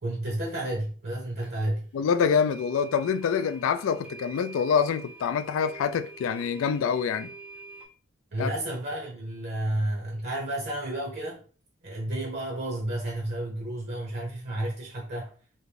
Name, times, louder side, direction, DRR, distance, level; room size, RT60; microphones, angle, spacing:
voice 1, 0.0-1.9 8.3-11.4 11.8-15.3, right 1 dB, 50° right, 0.8 m, -31 dB
sound 1, 1.4-1.5 2.5-7.8, right 3 dB, 5° right, 0.5 m, -46 dB
voice 2, 1.9-7.3 8.4-8.5, left 6 dB, 85° left, 0.3 m, -26 dB
3.1 x 2.5 x 3.2 m
head